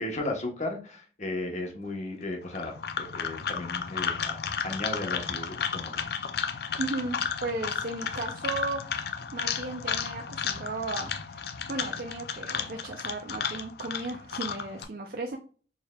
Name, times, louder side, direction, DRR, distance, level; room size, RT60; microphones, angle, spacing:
voice 1, 0.0-4.4 4.6-6.1, left 2 dB, 40° left, 2 dB, 1.1 m, -35 dB
sound 1, 2.5-14.8, left 7 dB, 60° left, 0.4 m, -33 dB
voice 2, 6.8-8.8 9.3-15.4, right 2 dB, 55° right, 3 dB, 0.5 m, -35 dB
4.5 x 3.4 x 2.3 m, 0.38 s
head